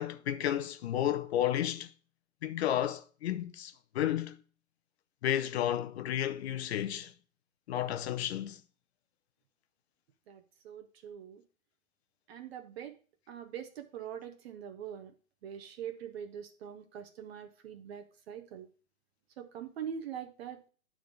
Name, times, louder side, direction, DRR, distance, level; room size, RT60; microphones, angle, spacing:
voice 1, 0.0-1.9 2.4-4.4 5.2-7.1 7.7-8.6, left 11 dB, 50° left, 0.7 m, -32 dB
voice 2, 10.3-11.4 12.3-13.0 13.3-15.1 15.4-18.7 19.4-20.6, right 8 dB, 45° right, 0.9 m, -43 dB
9.7 x 3.7 x 5.1 m
hypercardioid pair, 150°, 42 cm